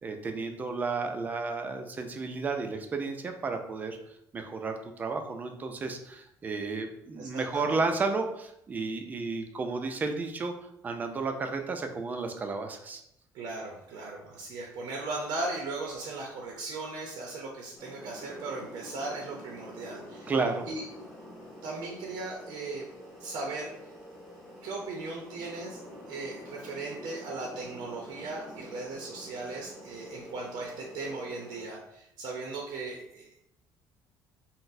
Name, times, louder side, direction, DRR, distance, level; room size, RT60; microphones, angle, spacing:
voice 1, 0.0-4.0 4.3-10.5 10.8-13.0 20.3-20.6, right 4 dB, 20° right, 5 dB, 0.3 m, -32 dB
voice 2, 7.2-7.8 13.3-20.3 20.7-20.9 21.6-22.9 23.2-23.9 24.6-25.8 26.1-33.4, right 3 dB, 75° right, -1 dB, 0.6 m, -38 dB
sound 1, 17.8-31.7, equal, 5° left, 0.8 m, -47 dB
3.9 x 2.0 x 2.6 m, 0.76 s
cardioid pair, 150°, 8 cm